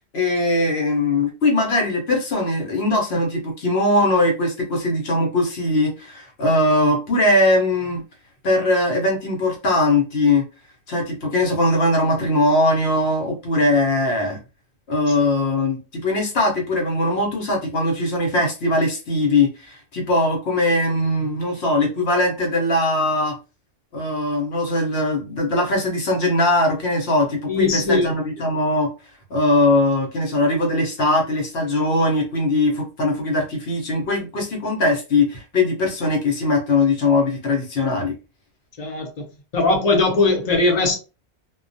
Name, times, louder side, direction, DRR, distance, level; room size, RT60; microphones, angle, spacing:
voice 1, 0.1-8.0 8.4-10.5 10.9-14.4 14.9-23.3 23.9-28.9 29.3-38.1, left 2 dB, 65° left, 0.9 m, -20 dB
voice 2, 27.5-28.1 38.8-39.3 39.5-40.9, left 3 dB, 45° left, 0.6 m, -20 dB
2.2 x 2.2 x 2.5 m
omnidirectional pair, 1.1 m